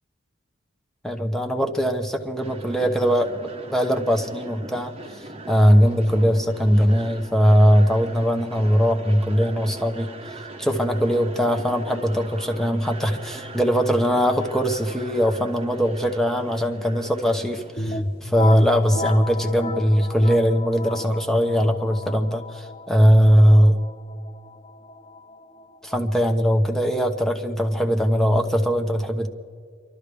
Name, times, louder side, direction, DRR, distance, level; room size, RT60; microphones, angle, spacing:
voice 1, 1.0-3.3 3.7-4.9 5.5-10.1 10.6-23.8 25.8-29.3, equal, ahead, 4 dB, 0.8 m, -20 dB
sound 1, 2.4-18.7, right 2 dB, 30° right, 1.0 m, -40 dB
sound 2, 17.8-27.3, left 2 dB, 25° left, 0.5 m, -34 dB
29.5 x 12.0 x 3.4 m, 2.1 s
head